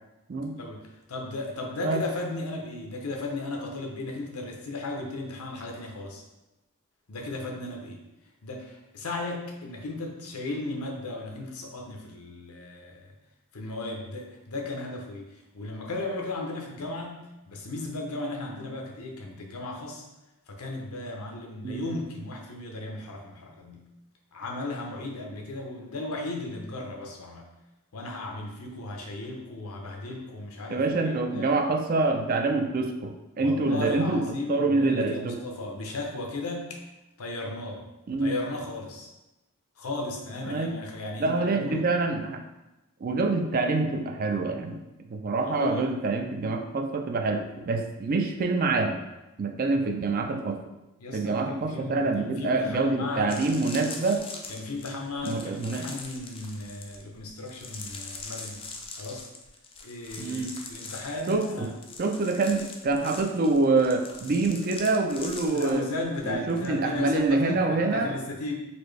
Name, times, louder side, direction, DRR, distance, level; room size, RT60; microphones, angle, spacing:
voice 1, 0.6-6.2 7.1-8.0 8.4-13.1 13.5-20.0 20.5-23.9 24.3-27.5 27.9-31.6 33.4-36.8 37.2-37.9 38.2-39.1 39.8-41.8 45.4-45.9 51.0-53.4 54.5-58.7 59.0-59.3 59.8-61.7 65.5-68.6, left 2 dB, 85° left, 1 dB, 0.7 m, -35 dB
voice 2, 30.7-35.4 38.1-38.3 40.5-40.8 41.2-42.4 43.0-49.0 49.4-50.6 51.1-54.3 55.2-55.9 60.2-60.6 61.3-61.7 62.0-65.9 66.2-68.2, right 3 dB, 40° right, 5 dB, 0.4 m, -26 dB
sound 1, 52.7-52.8 53.2-66.7 66.9-67.3, left 4 dB, 25° left, 0.4 m, -42 dB
4.2 x 2.6 x 3.2 m, 0.99 s
head